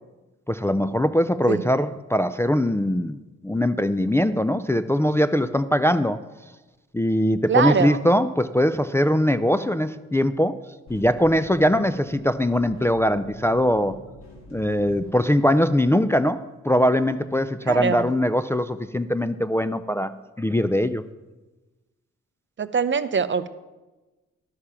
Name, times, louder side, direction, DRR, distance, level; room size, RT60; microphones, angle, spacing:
voice 1, 0.5-3.2 3.4-6.2 6.9-10.6 10.9-14.0 14.5-20.1 20.4-21.0, equal, 10° left, 10 dB, 0.4 m, -21 dB
voice 2, 7.5-8.0 17.7-18.1 22.6-23.5, right 6 dB, 40° right, 13 dB, 0.6 m, -23 dB
sound 1, 10.9-17.5, equal, 70° left, 2.9 m, -45 dB
11.5 x 6.6 x 5.7 m, 1.2 s
cardioid pair, 60°, 29 cm